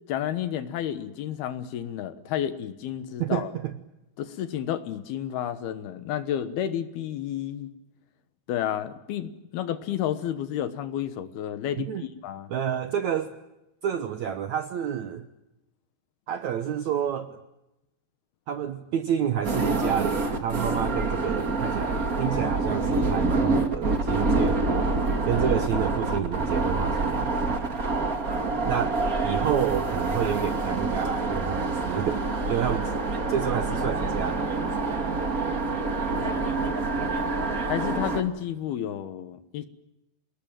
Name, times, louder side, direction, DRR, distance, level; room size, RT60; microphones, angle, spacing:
voice 1, 0.1-3.5 4.2-7.7 8.5-12.5 36.1-36.7 37.7-39.7, left 10 dB, 70° left, 12 dB, 3.0 m, -31 dB
voice 2, 3.2-3.7 11.8-12.0 12.5-13.3 13.8-15.2 16.3-17.4 18.5-24.6 25.2-27.5 28.7-32.9 33.3-34.7, right 9 dB, 75° right, 10 dB, 1.6 m, -29 dB
sound 1, 19.4-38.2, right 3 dB, 30° right, 1.6 m, -26 dB
28.5 x 20.0 x 9.0 m, 0.93 s
omnidirectional pair, 4.9 m